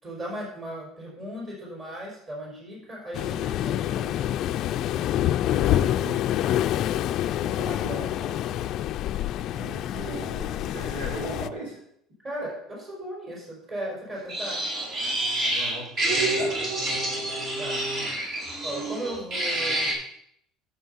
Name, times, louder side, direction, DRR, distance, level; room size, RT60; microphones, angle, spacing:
voice 1, 0.0-4.1 12.2-14.6 17.6-17.8 18.6-19.9, right 1 dB, 30° right, -2 dB, 4.9 m, -36 dB
Waves surf, 3.1-11.5, left 12 dB, 50° left, 0.5 m, -27 dB
voice 2, 5.5-6.2 7.4-8.4 9.5-11.8 15.5-16.6, right 1 dB, 85° right, -3 dB, 5.1 m, -38 dB
sound 1, 14.3-19.9, right 1 dB, 45° right, 4.1 m, -27 dB
11.0 x 7.8 x 5.6 m, 0.69 s
cardioid pair, 145°, 0 cm